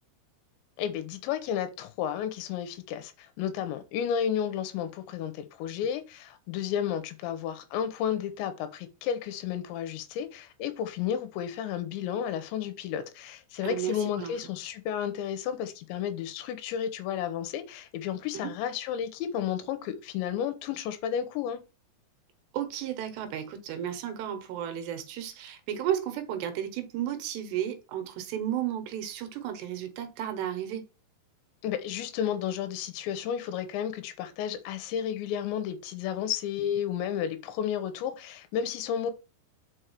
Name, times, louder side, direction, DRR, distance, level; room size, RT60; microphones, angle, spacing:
voice 1, 0.8-21.6 31.6-39.1, left 9 dB, 85° left, 3.1 m, -32 dB
voice 2, 13.6-14.3 18.3-18.5 22.5-30.9, right 10 dB, 75° right, 3.0 m, -33 dB
6.3 x 4.8 x 4.5 m
omnidirectional pair, 5.2 m